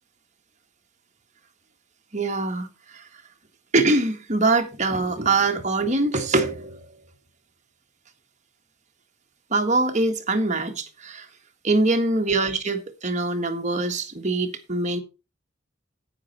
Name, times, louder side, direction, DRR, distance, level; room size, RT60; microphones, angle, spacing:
voice 1, 2.1-3.1 3.7-7.0 9.5-11.3 11.6-15.0, right 2 dB, 35° right, 1.6 m, -23 dB
9.8 x 9.1 x 4.3 m
head